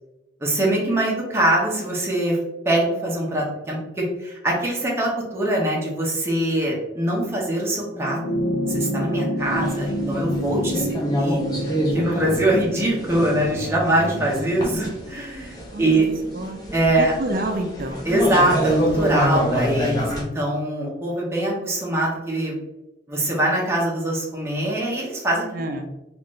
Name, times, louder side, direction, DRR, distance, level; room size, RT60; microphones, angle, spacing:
voice 1, 0.4-2.4 2.6-8.2 8.7-11.4 11.9-16.0 16.7-17.1 18.1-22.6 23.1-25.4, right 1 dB, 15° right, -4 dB, 0.9 m, -23 dB
sound 1, 7.9-16.6 17.8-17.9, equal, 70° left, 0.6 m, -29 dB
sound 2, 9.5-20.2, equal, 20° left, 0.9 m, -27 dB
voice 2, 12.1-12.8 15.7-16.0 16.3-16.6 17.0-18.0 25.5-25.9, right 1 dB, 55° right, 4 dB, 0.5 m, -29 dB
3.9 x 2.5 x 3.1 m, 0.97 s
head